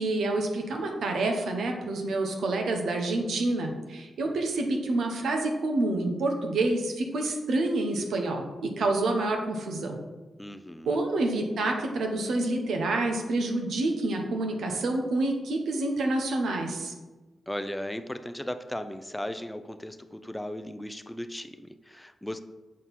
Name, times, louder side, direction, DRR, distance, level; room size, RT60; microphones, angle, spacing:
voice 1, 0.0-10.0 10.9-16.9, right 2 dB, 80° right, 3 dB, 1.0 m, -28 dB
voice 2, 10.4-11.0 17.5-22.4, left 1 dB, 10° left, 9 dB, 0.5 m, -36 dB
7.3 x 4.4 x 4.1 m, 1.2 s
cardioid pair, 55°, 0 cm